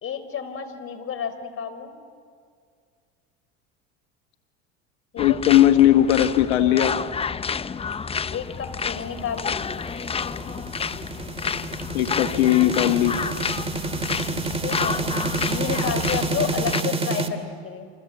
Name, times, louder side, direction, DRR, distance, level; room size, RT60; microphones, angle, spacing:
voice 1, 0.0-2.0 5.1-5.4 8.3-9.6 14.6-15.0 15.4-17.9, left 7 dB, 40° left, 10 dB, 4.1 m, -31 dB
voice 2, 5.2-6.9 11.9-13.1, left 12 dB, 80° left, 7 dB, 1.3 m, -18 dB
sound 1, 5.2-16.8, left 6 dB, 15° left, 0.7 m, -30 dB
sound 2, 9.2-17.3, right 3 dB, 15° right, 2.5 m, -29 dB
28.5 x 26.0 x 8.1 m, 2.1 s
hypercardioid pair, 90°, 33 cm